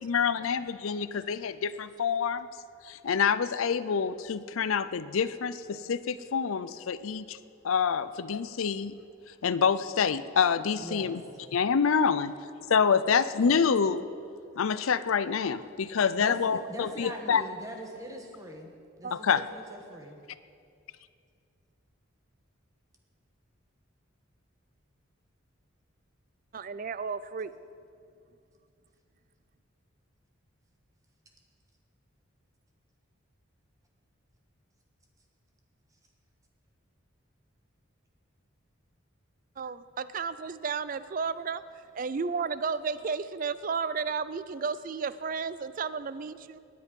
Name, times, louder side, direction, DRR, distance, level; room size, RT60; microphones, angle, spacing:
voice 1, 0.0-2.5 2.8-7.4 7.6-8.9 9.4-11.2 11.5-12.3 12.7-14.0 14.6-17.4 19.1-19.4, left 6 dB, 85° left, 15 dB, 0.5 m, -27 dB
voice 2, 10.8-11.2 16.2-18.7 19.0-20.2, right 1 dB, 15° right, 2 dB, 1.4 m, -42 dB
voice 3, 26.5-27.5 39.6-41.6 41.9-46.6, right 5 dB, 40° right, 15 dB, 0.4 m, -33 dB
18.5 x 9.8 x 5.3 m, 2.4 s
head